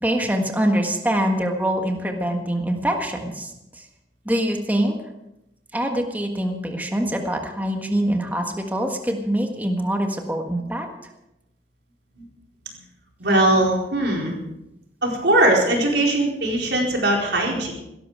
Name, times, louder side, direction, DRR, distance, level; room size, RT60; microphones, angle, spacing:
voice 1, 0.0-3.8 4.2-4.9 5.7-10.9, right 1 dB, 10° right, 3 dB, 1.5 m, -24 dB
voice 2, 13.2-14.4 15.0-17.7, right 1 dB, 80° right, -1 dB, 4.4 m, -20 dB
17.0 x 13.0 x 4.9 m, 0.89 s
head